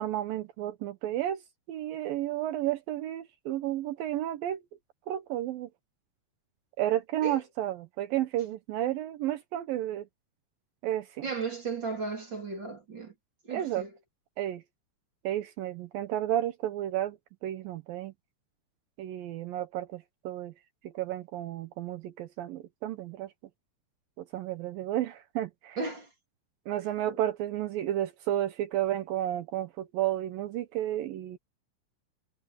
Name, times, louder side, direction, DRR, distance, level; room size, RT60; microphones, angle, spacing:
voice 1, 0.0-1.4 1.7-4.6 5.1-5.7 6.8-10.1 10.8-11.3 13.5-13.8 14.4-14.6 15.2-18.1 19.0-20.5 20.8-23.3 24.2-25.8 26.7-31.4, right 12 dB, 75° right, 2.6 m, -32 dB
voice 2, 11.2-13.1 13.5-13.9 25.8-26.1 27.1-27.2, right 4 dB, 30° right, 3.6 m, -35 dB
omnidirectional pair, 4.3 m